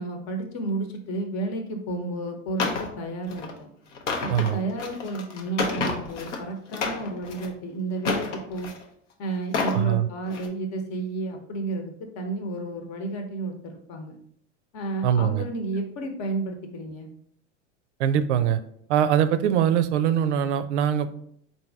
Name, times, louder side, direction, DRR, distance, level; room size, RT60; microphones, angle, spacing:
voice 1, 0.0-3.7 4.2-8.7 9.2-14.1 14.7-17.1, right 2 dB, 50° left, 5 dB, 1.0 m, -32 dB
sound 1, 2.6-2.9 3.3-3.5 3.9-6.4 6.7-7.5 8.0-8.8 9.4-9.8 10.3-10.5, left 4 dB, 75° left, 0.8 m, -30 dB
voice 2, 9.7-10.1 15.0-15.5 18.0-18.6 18.9-21.1, right 9 dB, 70° right, 12 dB, 0.5 m, -22 dB
4.1 x 2.7 x 3.4 m, 0.69 s
hypercardioid pair, 85°, 37 cm